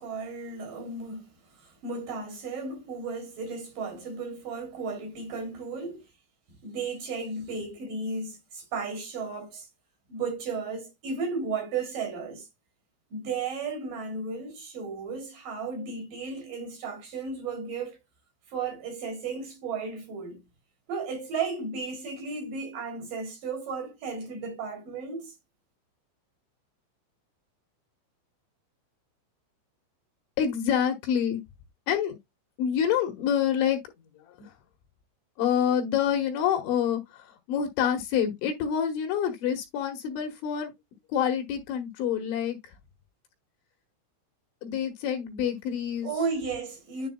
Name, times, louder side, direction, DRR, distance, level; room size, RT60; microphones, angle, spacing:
voice 1, 0.0-6.0 6.5-9.7 10.1-12.5 13.1-18.0 18.5-20.4 20.9-25.3 46.0-47.1, right 4 dB, 45° right, 4.1 m, -34 dB
voice 2, 30.4-31.4 31.9-32.2 32.6-33.8 35.4-40.7 41.1-42.6 44.6-46.1, left 8 dB, 70° left, 3.4 m, -27 dB
10.5 x 5.2 x 2.2 m
omnidirectional pair, 5.8 m